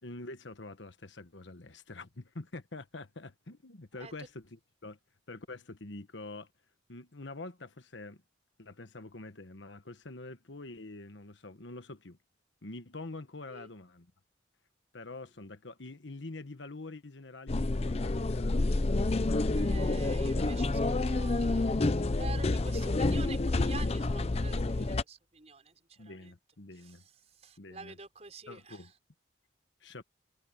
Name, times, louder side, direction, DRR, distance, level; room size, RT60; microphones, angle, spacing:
voice 1, 0.0-5.0 5.3-6.5 6.9-8.2 8.6-12.2 12.6-14.1 14.9-18.4 26.0-27.0 27.6-28.0 28.5-28.9 29.8-30.0, left 2 dB, 75° left, 1.3 m, -46 dB
sound 1, 17.5-25.0, left 2 dB, 35° left, 0.5 m, -29 dB
voice 2, 19.5-26.3 26.7-28.9, right 3 dB, 35° right, 5.7 m, -47 dB
head